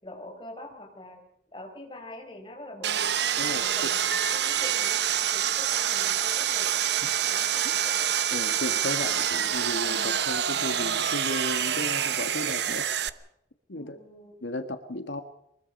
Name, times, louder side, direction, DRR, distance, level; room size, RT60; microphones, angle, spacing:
voice 1, 0.0-1.2 1.5-3.2 3.4-6.9 7.3-8.0 13.7-14.4, left 1 dB, 25° left, 2 dB, 4.6 m, -44 dB
Sawing, 2.8-13.1, right 9 dB, 65° right, 0.9 m, -26 dB
voice 2, 3.4-3.9 8.3-12.9 13.7-14.0 14.4-15.2, left 2 dB, 90° left, 8 dB, 1.7 m, -34 dB
sound 1, 4.1-5.6, left 1 dB, 5° left, 4.6 m, -39 dB
sound 2, 8.7-13.2, right 1 dB, 30° right, 4.1 m, -55 dB
24.0 x 21.5 x 5.4 m, 0.75 s
head